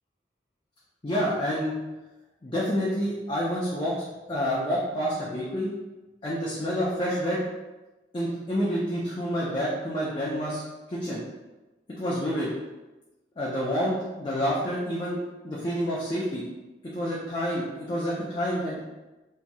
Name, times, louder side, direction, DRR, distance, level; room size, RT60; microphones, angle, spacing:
voice 1, 1.0-1.7 2.4-4.0 4.3-5.7 6.2-7.4 8.1-10.6 10.9-11.2 12.0-12.5 13.4-16.5 16.9-18.8, equal, 25° left, -7 dB, 0.4 m, -28 dB
2.9 x 2.6 x 2.2 m, 1.1 s
head